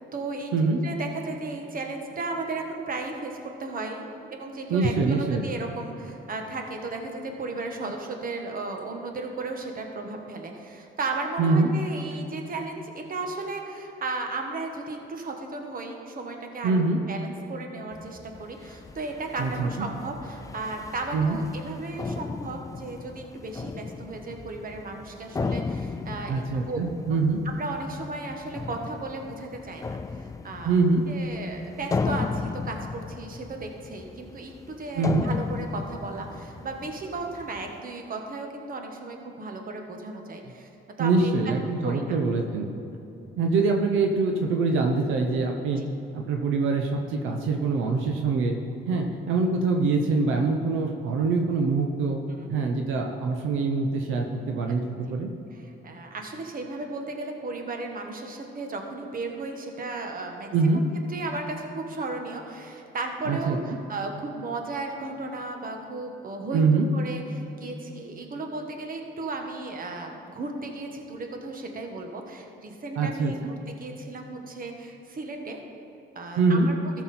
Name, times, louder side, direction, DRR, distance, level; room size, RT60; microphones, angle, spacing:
voice 1, 0.1-16.8 17.1-26.8 27.5-30.7 31.1-40.7 41.0-41.4 41.8-42.0 45.8-45.9 52.3-52.7 55.5-60.5 61.1-73.4 73.7-75.6 76.1-76.7, right 3 dB, 45° right, 3 dB, 1.3 m, -35 dB
voice 2, 4.7-5.5 11.4-11.7 16.6-17.0 19.4-19.9 21.1-21.4 26.3-27.4 30.6-31.0 34.9-35.3 41.0-42.7 43.4-45.8 46.1-48.6 48.9-52.2 52.5-55.3 60.5-60.8 63.2-63.6 66.5-66.9 73.0-73.5 76.4-76.7, right 4 dB, 90° right, 3 dB, 0.8 m, -24 dB
sound 1, 17.9-37.8, left 4 dB, 15° left, 0.3 m, -36 dB
14.0 x 6.1 x 4.3 m, 2.9 s
cardioid pair, 90°, 20 cm